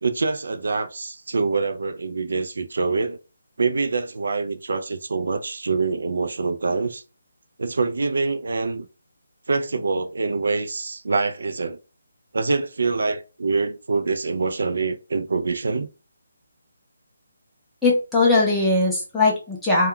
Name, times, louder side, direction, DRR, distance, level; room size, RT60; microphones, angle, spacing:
voice 1, 0.0-3.2 3.6-7.0 7.6-8.9 9.5-11.8 12.3-15.9, right 4 dB, 65° right, 0.3 m, -25 dB
voice 2, 17.8-19.9, left 3 dB, ahead, 0.6 m, -20 dB
2.2 x 2.2 x 3.6 m
hypercardioid pair, 175°, 0 cm